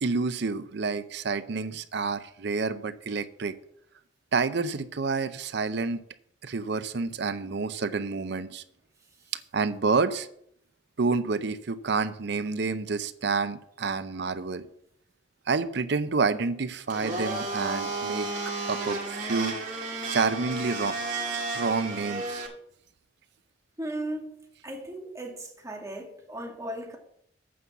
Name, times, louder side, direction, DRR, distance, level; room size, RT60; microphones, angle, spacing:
voice 1, 0.0-3.5 4.3-6.0 6.4-8.6 9.5-10.3 11.0-14.7 15.5-18.3 18.6-19.6 20.1-20.9 21.5-22.5, right 4 dB, 65° right, 13 dB, 0.6 m, -28 dB
Domestic sounds home sounds, 16.9-22.5, right 3 dB, 45° right, 2.4 m, -32 dB
voice 2, 23.8-24.3 24.6-27.0, right 1 dB, 20° right, 1 dB, 2.0 m, -36 dB
8.6 x 5.4 x 7.2 m, 0.69 s
head